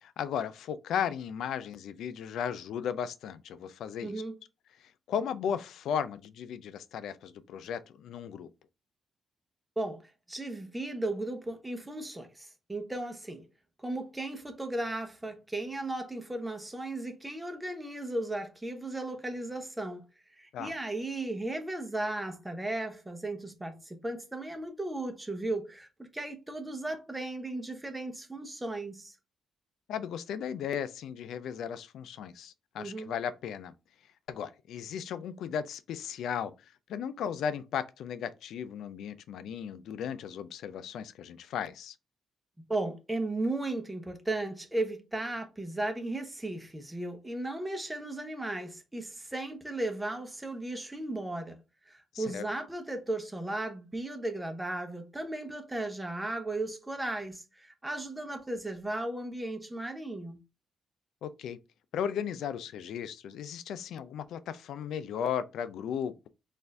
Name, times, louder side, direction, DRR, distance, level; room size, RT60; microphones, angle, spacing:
voice 1, 0.0-4.1 4.8-8.5 20.5-20.7 29.9-33.7 34.3-36.5 36.9-42.0 52.1-52.4 61.2-61.6 61.9-66.3, left 8 dB, 85° left, 0.4 m, -35 dB
voice 2, 4.0-4.4 9.8-13.5 13.8-20.0 20.4-29.1 32.8-33.1 42.7-51.6 51.9-60.4, right 2 dB, 10° right, 0.8 m, -36 dB
4.3 x 2.6 x 3.4 m
cardioid pair, 140°, 0 cm